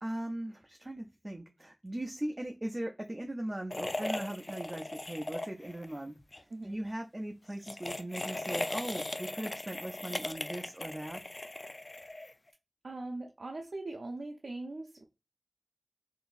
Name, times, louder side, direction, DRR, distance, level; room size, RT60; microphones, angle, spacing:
voice 1, 0.0-11.2, right 1 dB, 30° right, 0.4 m, -39 dB
sound 1, 3.7-5.9 6.2-6.4 7.5-12.5, left 2 dB, 45° left, 0.3 m, -38 dB
voice 2, 12.8-15.0, right 2 dB, 90° right, 0.4 m, -41 dB
3.7 x 2.6 x 2.4 m
wide cardioid pair, 45°, 0 cm